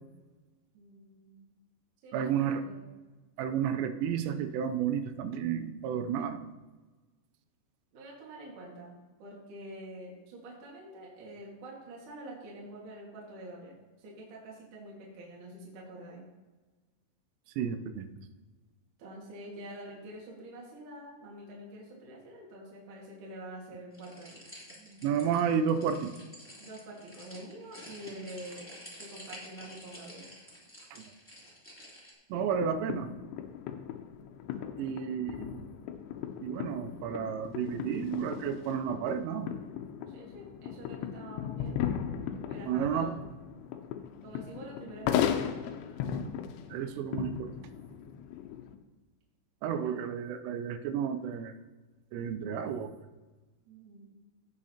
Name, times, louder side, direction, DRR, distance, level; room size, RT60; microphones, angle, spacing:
voice 1, 0.7-1.5 2.0-2.9 7.9-16.3 19.0-24.4 24.7-25.4 26.6-28.7 29.0-30.3 40.1-42.0 42.5-43.3 44.2-45.6 49.7-49.9 53.7-54.1, right 1 dB, 55° right, -4 dB, 2.6 m, -47 dB
voice 2, 2.1-2.6 3.4-6.4 17.6-18.1 25.0-26.1 30.9-31.1 32.3-33.1 34.8-35.6 36.4-39.5 42.7-43.1 46.2-46.3 46.7-47.5 49.6-51.5 52.1-52.9, right 8 dB, 90° right, 9 dB, 3.2 m, -31 dB
sound 1, 23.9-32.1, equal, 10° left, 0.6 m, -50 dB
sound 2, 32.3-48.8, left 9 dB, 80° left, 2.7 m, -37 dB
16.5 x 6.3 x 2.8 m, 1.2 s
omnidirectional pair, 5.7 m